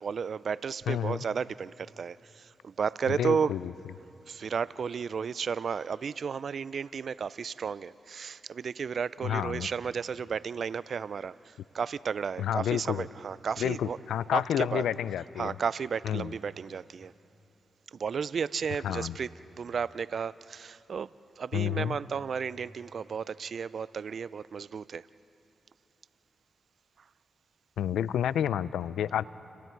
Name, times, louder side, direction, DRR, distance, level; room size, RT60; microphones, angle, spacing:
voice 1, 0.0-3.5 4.3-14.0 14.3-14.8 15.4-17.1 17.9-19.3 19.6-25.1, right 6 dB, 65° right, 18 dB, 0.5 m, -33 dB
voice 2, 0.9-1.2 3.1-3.7 9.2-9.7 12.4-13.1 13.6-15.6 16.0-16.3 18.8-19.1 21.5-22.0 27.8-29.2, left 10 dB, 85° left, 17 dB, 0.4 m, -30 dB
30.0 x 28.5 x 4.6 m, 3.0 s
supercardioid pair, 50°, 0 cm